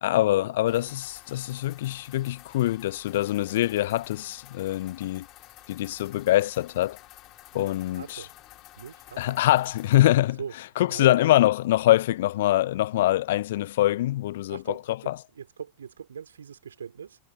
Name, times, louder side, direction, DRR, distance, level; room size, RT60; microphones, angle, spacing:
voice 1, 0.0-5.3 5.7-7.0 7.5-8.3 9.2-15.2, left 15 dB, 55° left, 0.5 m, -24 dB
sound 1, 0.7-10.0, left 16 dB, 35° left, 1.8 m, -51 dB
voice 2, 8.0-8.3 8.8-9.4 10.4-10.5 10.9-11.2 14.5-14.8 15.0-17.2, right 7 dB, 70° right, 3.6 m, -40 dB
figure-of-eight pair, 90°, 0 cm